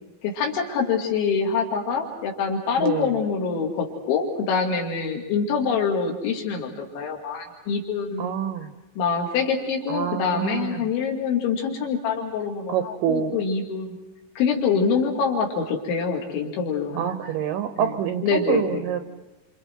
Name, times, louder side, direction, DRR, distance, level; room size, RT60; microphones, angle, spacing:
voice 1, 0.2-8.3 9.0-14.0 14.4-17.3 17.8-18.0 18.2-18.9, left 5 dB, 85° left, 1 dB, 4.9 m, -25 dB
voice 2, 2.8-3.1 8.2-8.7 9.9-10.9 12.7-13.4 17.0-19.0, right 9 dB, 80° right, 9 dB, 1.9 m, -26 dB
29.5 x 27.5 x 4.6 m, 1.1 s
omnidirectional pair, 5.2 m